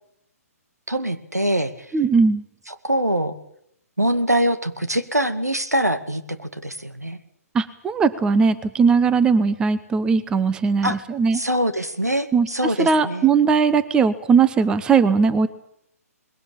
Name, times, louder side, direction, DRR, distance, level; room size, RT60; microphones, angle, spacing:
voice 1, 0.9-1.7 2.8-3.3 4.0-7.2 10.8-11.0 11.3-13.3, right 1 dB, 90° right, 9 dB, 2.2 m, -23 dB
voice 2, 1.9-2.4 7.5-11.4 12.3-15.5, right 5 dB, 10° right, 14 dB, 0.9 m, -19 dB
21.5 x 17.0 x 8.7 m, 0.72 s
figure-of-eight pair, 130°, 8 cm